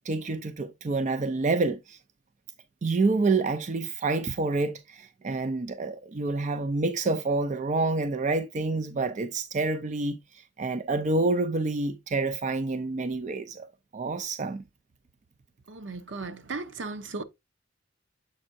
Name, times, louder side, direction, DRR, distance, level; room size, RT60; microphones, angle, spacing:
voice 1, 0.0-2.0 2.8-13.7 13.9-14.6, right 3 dB, 40° right, 0.4 m, -28 dB
voice 2, 15.7-17.2, right 3 dB, 75° right, 0.8 m, -36 dB
7.5 x 5.4 x 2.6 m
head